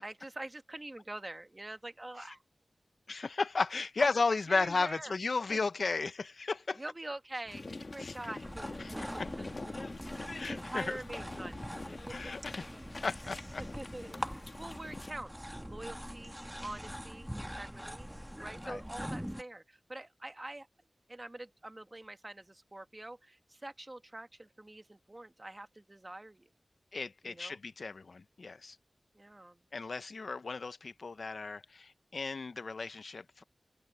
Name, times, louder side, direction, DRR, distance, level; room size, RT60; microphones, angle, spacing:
voice 1, 0.0-2.4 4.0-4.1 4.5-5.1 5.5-5.6 6.8-9.9 10.5-11.6 11.9-12.5 13.6-16.3 16.6-18.1 18.4-20.7 21.1-26.5 27.2-27.6 29.1-29.6, right 1 dB, 25° right, 1.5 m, -45 dB
voice 2, 3.1-6.8 8.0-8.1 8.8-9.3 10.4-11.0 12.1-12.6 13.0-13.6 18.6-18.8 26.9-28.8 29.7-33.4, left 4 dB, 65° left, 0.6 m, -34 dB
sound 1, 7.5-15.1, left 3 dB, 45° left, 1.6 m, -45 dB
sound 2, 8.4-19.4, equal, 5° right, 1.3 m, -43 dB
open air
wide cardioid pair, 80°, 0 cm